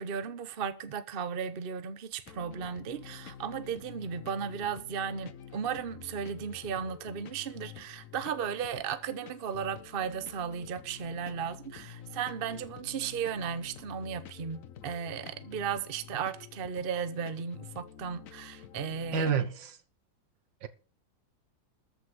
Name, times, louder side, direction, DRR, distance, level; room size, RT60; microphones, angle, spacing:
voice 1, 0.0-19.3, right 7 dB, 40° right, 0.8 m, -35 dB
sound 1, 2.3-19.5, left 9 dB, 55° left, 1.0 m, -49 dB
voice 2, 19.1-19.8 20.6-20.7, right 8 dB, 75° right, 1.9 m, -28 dB
14.0 x 5.2 x 7.7 m
omnidirectional pair, 2.1 m